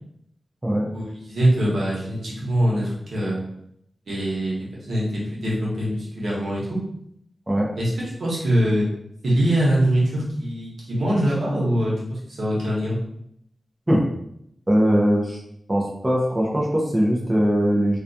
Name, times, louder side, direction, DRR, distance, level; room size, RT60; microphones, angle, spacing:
voice 1, 0.9-3.4 4.1-6.8 7.8-7.9 8.2-8.9 9.2-13.0, right 1 dB, 85° right, -5 dB, 0.9 m, -23 dB
voice 2, 14.7-15.4 15.7-18.0, equal, 20° right, -2 dB, 0.5 m, -20 dB
2.3 x 2.2 x 2.6 m, 0.73 s
wide cardioid pair, 95°, 0 cm